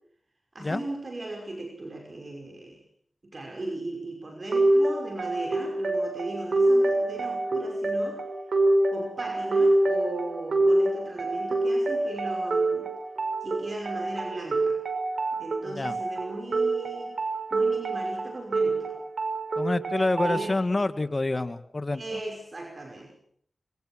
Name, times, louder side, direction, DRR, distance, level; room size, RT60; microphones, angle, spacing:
voice 1, 0.5-2.8 3.2-8.2 8.9-12.9 13.4-14.8 15.4-17.2 17.5-19.0 20.2-20.6 21.9-23.2, right 2 dB, 55° right, 3 dB, 5.5 m, -37 dB
sound 1, 4.5-20.5, right 2 dB, 80° right, 5.7 m, -26 dB
voice 2, 19.6-22.0, left 2 dB, 45° left, 11 dB, 2.1 m, -27 dB
26.0 x 23.5 x 6.1 m, 0.63 s
cardioid pair, 40°, 0 cm